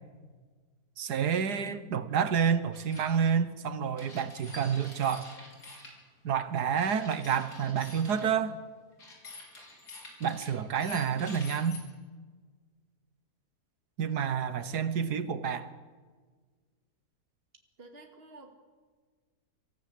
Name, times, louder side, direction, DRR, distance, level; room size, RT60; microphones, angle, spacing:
voice 1, 1.0-5.3 6.2-8.6 10.2-11.8 14.0-15.7, right 7 dB, 75° right, 1.7 m, -29 dB
sound 1, 2.7-3.1 4.0-5.9 6.8-8.3 9.0-11.8, left 2 dB, 80° left, 5.0 m, -47 dB
voice 2, 14.6-15.2 17.8-18.5, right 2 dB, 35° right, 2.5 m, -52 dB
25.5 x 15.0 x 8.5 m
omnidirectional pair, 1.7 m